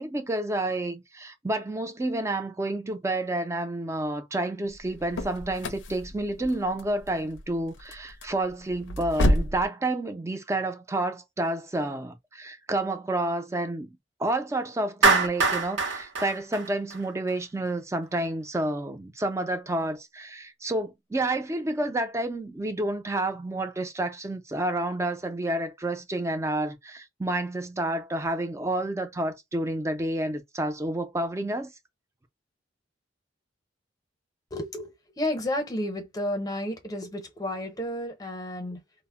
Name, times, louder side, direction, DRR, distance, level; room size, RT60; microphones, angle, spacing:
voice 1, 0.0-13.9 14.2-31.7, right 1 dB, 15° right, 0.4 m, -29 dB
sound 1, 4.7-9.7, left 1 dB, 85° left, 0.5 m, -30 dB
Clapping, 15.0-17.3, right 4 dB, 90° right, 0.7 m, -24 dB
voice 2, 34.5-38.8, left 1 dB, 20° left, 0.7 m, -32 dB
2.0 x 2.0 x 3.5 m
head